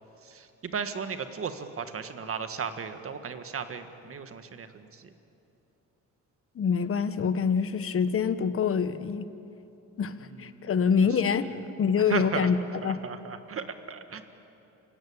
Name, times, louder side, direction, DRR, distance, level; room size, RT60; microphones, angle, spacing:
voice 1, 0.3-5.1 10.5-10.7 12.1-12.5 12.8-14.2, right 6 dB, 50° right, 9 dB, 1.8 m, -35 dB
voice 2, 6.6-9.3 10.0-10.1 10.4-11.5 11.8-12.6 12.8-13.0, left 6 dB, 45° left, 12 dB, 1.2 m, -25 dB
28.5 x 17.0 x 8.8 m, 2.8 s
cardioid pair, 90°, 30 cm